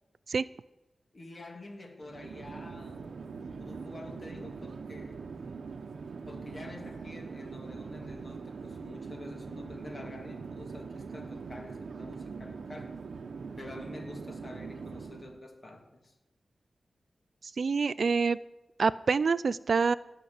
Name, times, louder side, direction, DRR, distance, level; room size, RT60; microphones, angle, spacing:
voice 1, 1.1-5.2 6.3-12.9 13.6-16.1, left 2 dB, 40° left, 3 dB, 2.6 m, -47 dB
Chatter / Fixed-wing aircraft airplane, 2.0-15.4, right 5 dB, 85° right, 0.9 m, -42 dB
voice 2, 17.6-18.4 18.8-19.9, right 5 dB, 65° right, 17 dB, 0.4 m, -26 dB
16.5 x 6.1 x 9.5 m, 0.99 s
wide cardioid pair, 120°, 0 cm